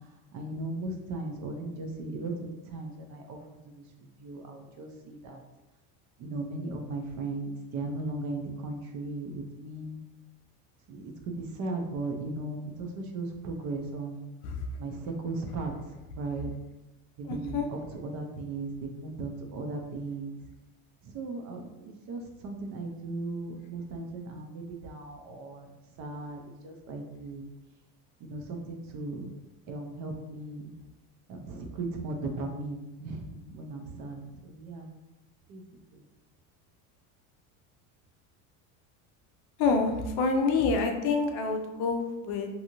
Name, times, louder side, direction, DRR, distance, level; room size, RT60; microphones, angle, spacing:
voice 1, 0.3-5.4 6.2-10.0 10.9-14.3 14.8-16.5 17.2-20.4 21.0-25.7 26.0-27.5 28.2-29.3 29.7-30.7 31.3-34.9 35.5-35.6 35.9-36.0, right 2 dB, 45° right, 3 dB, 0.4 m, -37 dB
voice 2, 17.3-17.7 39.6-42.5, left 4 dB, 60° left, 4 dB, 0.5 m, -27 dB
2.6 x 2.4 x 2.8 m, 1.0 s
cardioid pair, 135°, 43 cm